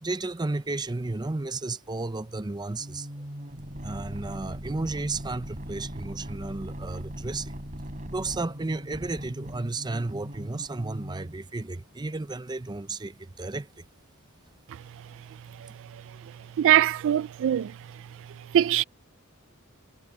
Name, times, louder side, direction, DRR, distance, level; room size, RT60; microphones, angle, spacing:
voice 1, 0.0-3.1 3.8-7.5 8.1-13.8, right 2 dB, 20° right, 0.6 m, -33 dB
sound 1, 2.8-11.4, equal, 35° right, 4.2 m, -39 dB
voice 2, 16.6-17.7 18.5-18.8, right 11 dB, 60° right, 0.3 m, -21 dB
head